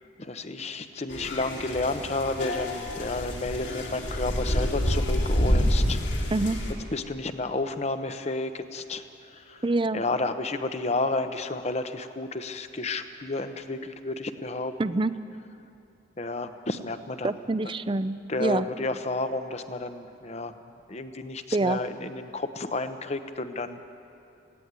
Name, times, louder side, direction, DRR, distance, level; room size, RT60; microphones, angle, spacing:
voice 1, 0.2-6.3 6.9-9.0 9.3-9.6 9.9-15.0 16.2-17.4 18.3-20.6 20.9-23.8, left 2 dB, 35° left, 9 dB, 0.9 m, -31 dB
sound 1, 1.1-6.7, equal, 65° left, 2.9 m, -27 dB
voice 2, 9.6-10.0 14.8-15.1 17.2-18.7 21.5-21.8, right 2 dB, 25° right, 13 dB, 0.5 m, -26 dB
17.0 x 16.5 x 9.6 m, 2.7 s
head